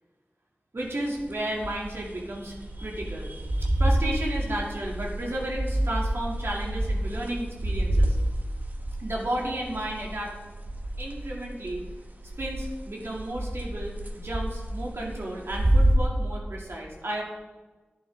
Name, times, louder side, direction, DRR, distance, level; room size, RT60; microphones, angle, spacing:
voice 1, 0.7-8.2 9.0-10.3 11.0-11.8 12.4-17.2, right 1 dB, 80° right, -2 dB, 2.5 m, -33 dB
sound 1, 0.9-12.0 12.2-12.7 13.0-16.0, right 1 dB, 40° right, 1.2 m, -28 dB
11.5 x 10.5 x 3.6 m, 1.3 s
wide cardioid pair, 45°, 4 cm